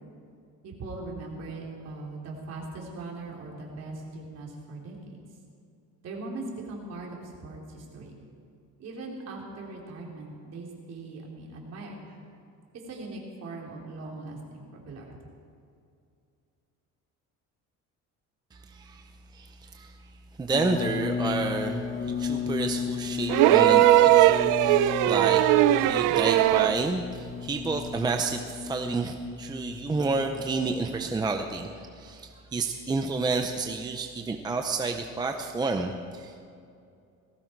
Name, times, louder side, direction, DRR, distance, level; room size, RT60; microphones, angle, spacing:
voice 1, 0.6-5.2 6.0-8.1 8.8-12.2 12.9-15.2, right 2 dB, 50° right, -2 dB, 3.8 m, -40 dB
voice 2, 18.5-19.0 19.3-20.0 20.4-25.5 25.8-31.7 32.0-36.5, right 3 dB, 15° right, 5 dB, 0.6 m, -30 dB
sound 1, 20.5-31.5, left 6 dB, 30° left, 1.2 m, -34 dB
sound 2, 23.3-26.8 28.2-28.3, right 14 dB, 70° right, 0.6 m, -19 dB
18.5 x 16.0 x 4.6 m, 2.4 s
cardioid pair, 155°, 32 cm